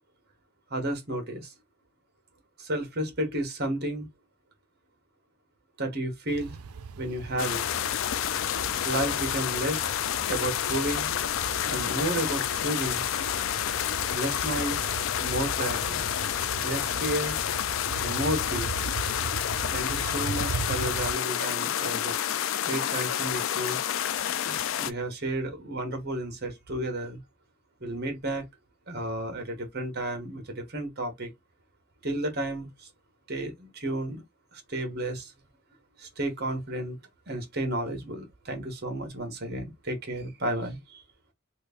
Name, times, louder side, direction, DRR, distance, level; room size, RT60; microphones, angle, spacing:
voice 1, 0.7-1.5 2.7-4.1 5.8-6.6 7.0-7.6 8.8-9.8 10.3-11.1 11.7-13.0 14.1-14.9 15.2-16.0 16.6-17.4 18.0-18.7 19.7-22.1 22.6-23.8 24.5-27.2 27.8-28.4 28.9-31.3 32.0-32.7 33.3-34.2 34.7-35.3 36.2-37.0 37.3-40.8, right 1 dB, 50° right, 1.1 m, -32 dB
sound 1, 6.3-21.1, right 5 dB, 90° right, 0.4 m, -38 dB
sound 2, 7.4-24.9, left 10 dB, 65° left, 0.3 m, -29 dB
3.1 x 2.5 x 3.4 m
head